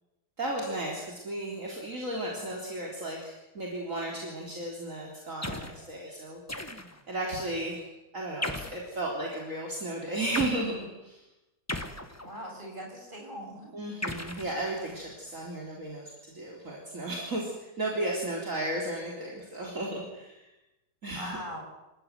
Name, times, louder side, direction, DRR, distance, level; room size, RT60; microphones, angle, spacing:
voice 1, 0.4-6.4 7.1-7.9 8.1-11.2 13.7-20.5 21.0-21.4, right 1 dB, 50° right, -2 dB, 4.1 m, -34 dB
sound 1, 5.4-5.8 6.5-7.1 8.4-8.9 10.3-10.6 11.7-12.6 14.0-15.1, left 1 dB, 10° left, 1.5 m, -36 dB
voice 2, 12.2-13.7 21.1-21.6, equal, 30° right, 1 dB, 7.1 m, -40 dB
27.0 x 15.5 x 9.4 m, 1.0 s
omnidirectional pair, 1.8 m